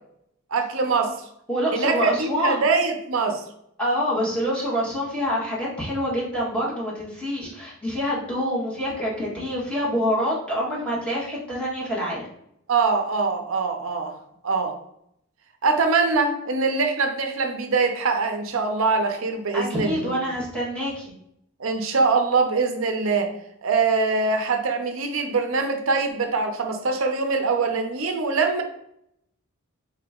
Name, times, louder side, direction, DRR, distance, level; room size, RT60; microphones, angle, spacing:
voice 1, 0.5-1.1 1.7-3.4 12.7-14.2 14.4-14.7 15.6-20.2 21.6-23.3 23.6-28.6, right 4 dB, 60° right, 5 dB, 0.6 m, -23 dB
voice 2, 1.5-2.6 3.8-12.2 19.5-21.1, equal, 5° left, -7 dB, 1.3 m, -26 dB
4.3 x 2.9 x 3.6 m, 0.75 s
head